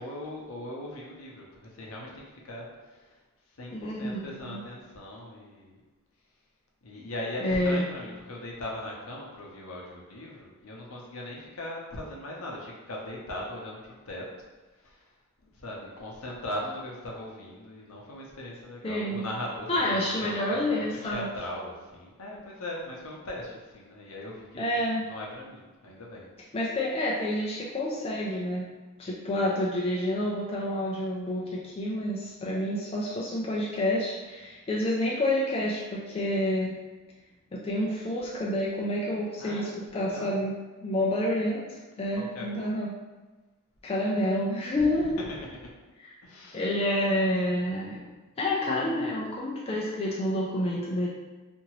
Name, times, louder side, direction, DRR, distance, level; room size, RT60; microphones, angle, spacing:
voice 1, 0.0-5.8 6.8-14.3 14.7-15.1 15.5-26.3 39.4-40.4 42.2-42.7 44.8-45.7 46.2-46.7, left 1 dB, 70° left, -2 dB, 0.7 m, -39 dB
voice 2, 3.7-4.6 7.4-7.8 18.8-19.2 19.7-21.3 24.6-25.0 26.5-28.6 29.0-36.8 37.6-40.5 40.8-42.9 43.8-45.2 46.5-48.0 48.4-51.1, left 1 dB, 25° left, -4 dB, 0.3 m, -28 dB
2.8 x 2.5 x 2.9 m, 1.2 s
head